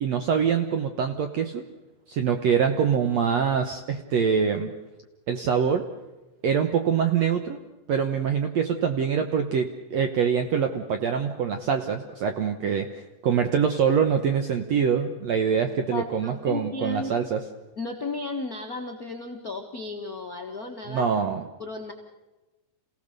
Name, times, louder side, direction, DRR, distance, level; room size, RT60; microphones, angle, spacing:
voice 1, 0.0-1.7 2.1-4.7 5.3-5.9 6.4-7.6 7.9-17.4 20.9-21.5, right 7 dB, 75° right, 7 dB, 1.6 m, -24 dB
voice 2, 15.9-17.1 17.8-21.1 21.6-21.9, left 3 dB, 65° left, 2 dB, 0.8 m, -34 dB
27.5 x 17.0 x 6.7 m, 1.1 s
omnidirectional pair, 4.3 m